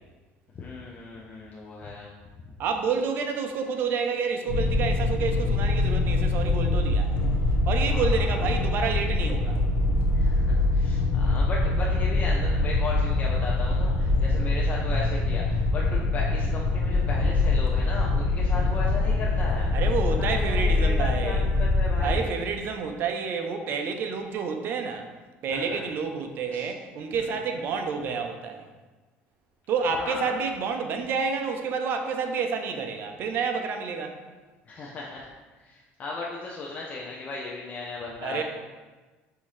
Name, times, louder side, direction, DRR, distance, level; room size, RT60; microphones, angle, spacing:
voice 1, 0.5-2.1 7.8-8.6 10.1-19.7 20.2-22.4 25.5-25.8 26.5-26.7 27.1-27.6 29.9-30.4 34.6-35.3 35.6-38.4, left 3 dB, 35° left, -4 dB, 0.5 m, -36 dB
voice 2, 2.6-7.1 7.7-9.6 19.7-21.5 22.0-25.1 25.4-28.7 29.7-34.2 38.2-38.4, right 5 dB, 55° right, 5 dB, 0.5 m, -29 dB
sound 1, 4.5-22.2, left 2 dB, 90° left, 0.6 m, -24 dB
5.5 x 2.6 x 3.1 m, 1.3 s
cardioid pair, 115°, 4 cm